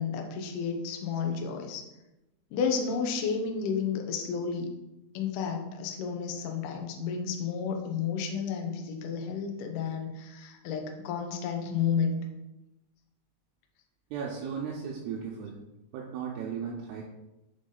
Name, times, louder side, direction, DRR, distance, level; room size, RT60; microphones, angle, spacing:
voice 1, 0.0-1.8 2.5-4.7 5.1-12.2, left 6 dB, 85° left, 3 dB, 1.8 m, -31 dB
voice 2, 14.1-15.6 15.9-17.0, right 6 dB, 80° right, -2 dB, 2.7 m, -36 dB
6.9 x 3.7 x 3.9 m, 0.93 s
omnidirectional pair, 4.9 m